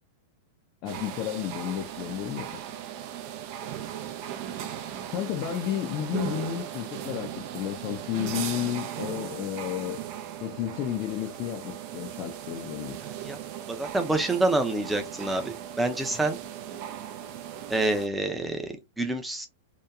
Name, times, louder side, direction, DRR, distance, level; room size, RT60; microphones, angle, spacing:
voice 1, 0.8-2.6 5.1-10.0 10.4-13.0, left 11 dB, 45° left, 0.5 m, -32 dB
sound 1, 0.9-18.1, right 10 dB, 50° right, 0.5 m, -38 dB
voice 2, 13.0-13.4 13.7-16.4 17.7-19.5, right 2 dB, 5° right, 0.6 m, -27 dB
2.9 x 2.2 x 2.3 m
hypercardioid pair, 105°, 0 cm